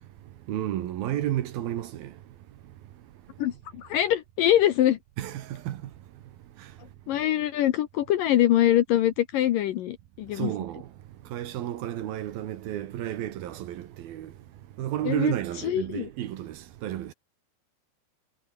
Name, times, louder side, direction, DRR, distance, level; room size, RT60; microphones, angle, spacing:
voice 1, 0.5-2.1 5.2-5.8 10.4-10.8 11.3-14.3 14.8-16.6 16.8-17.1, right 12 dB, 65° right, 3.0 m, -31 dB
voice 2, 3.4-5.0 7.1-10.5 15.1-15.3 15.7-16.1, left 12 dB, 70° left, 2.3 m, -23 dB
omnidirectional pair, 4.9 m